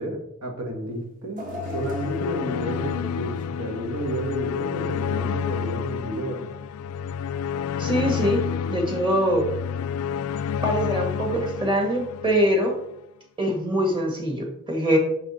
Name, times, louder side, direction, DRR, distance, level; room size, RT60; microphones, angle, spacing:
voice 1, 0.0-1.4 1.7-6.4, right 1 dB, 90° right, 2 dB, 1.8 m, -31 dB
sound 1, 1.4-12.8, left 7 dB, 85° left, 0.3 m, -29 dB
sound 2, 1.4-4.5 4.9-5.1 6.1-6.2, left 1 dB, 40° right, 1.2 m, -39 dB
voice 2, 7.8-9.5 10.6-12.7 13.4-15.0, equal, 25° right, 2 dB, 1.6 m, -23 dB
5.9 x 5.7 x 4.2 m, 0.77 s
head